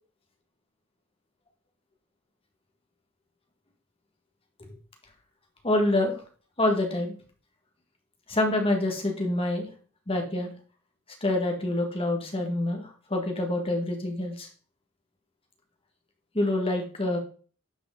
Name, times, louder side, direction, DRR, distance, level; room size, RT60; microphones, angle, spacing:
voice 1, 5.6-6.2 6.6-7.2 8.3-9.7 10.1-10.5 11.2-14.5 16.3-17.2, left 1 dB, 25° left, 3 dB, 1.8 m, -26 dB
10.5 x 5.1 x 3.9 m, 0.40 s
head